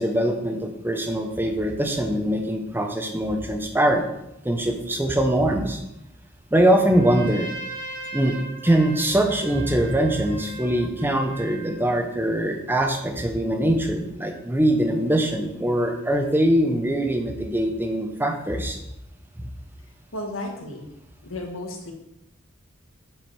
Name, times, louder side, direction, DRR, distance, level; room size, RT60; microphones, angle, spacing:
voice 1, 0.0-4.0 4.4-5.8 6.5-7.5 8.1-18.8, right 1 dB, 10° right, 4 dB, 0.8 m, -22 dB
Trumpet, 6.8-11.9, right 2 dB, 45° right, 1.9 m, -38 dB
voice 2, 20.1-20.9 21.2-21.9, left 1 dB, 75° left, 2 dB, 1.4 m, -33 dB
7.3 x 4.9 x 4.7 m, 0.84 s
head